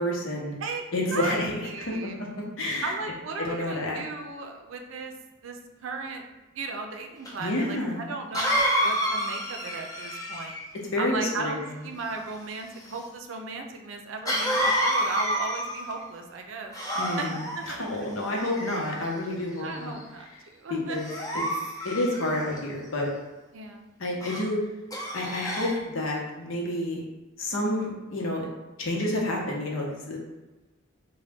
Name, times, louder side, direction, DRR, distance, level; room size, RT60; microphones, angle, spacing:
voice 1, 0.0-0.6 0.9-2.1 2.6-2.9 3.4-4.0 7.4-8.1 10.9-11.5 17.0-17.4 17.7-19.9 20.7-21.1 21.3-21.4 21.8-23.1 24.0-24.6 25.1-27.0 27.4-28.5 28.8-30.2, left 1 dB, 80° left, -1 dB, 0.8 m, -29 dB
voice 2, 1.1-2.2 2.8-5.1 5.4-6.2 6.5-10.5 11.0-16.7 17.2-18.1 19.6-21.0 23.5-23.9, right 3 dB, 75° right, 4 dB, 0.5 m, -36 dB
Cough, 7.3-7.4 8.3-10.7 14.3-16.0 16.7-17.6 18.4-19.1 19.7-20.0 21.0-22.6 24.2-24.5 24.9-25.8, equal, 20° left, 0.5 m, -28 dB
3.9 x 2.2 x 3.4 m, 1.1 s
head